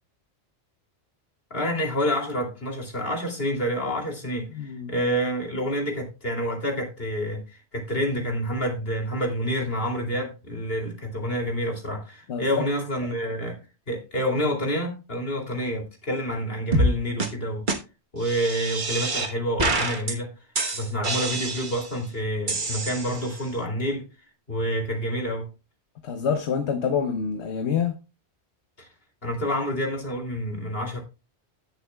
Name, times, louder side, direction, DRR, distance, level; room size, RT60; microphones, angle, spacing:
voice 1, 1.5-13.6 13.9-17.7 18.1-20.3 20.7-24.1 24.5-25.5 28.8-28.9 29.2-31.0, equal, 60° left, 3.1 m, -28 dB
voice 2, 4.5-4.9 12.3-12.7 26.0-28.0, left 7 dB, 75° left, 1.2 m, -27 dB
sound 1, 16.7-16.9 17.2-17.3 17.7-17.8 18.2-19.3 19.6-20.1 20.5-21.9 22.5-23.4, right 2 dB, 45° right, 1.3 m, -26 dB
17.0 x 6.9 x 2.3 m
omnidirectional pair, 1.1 m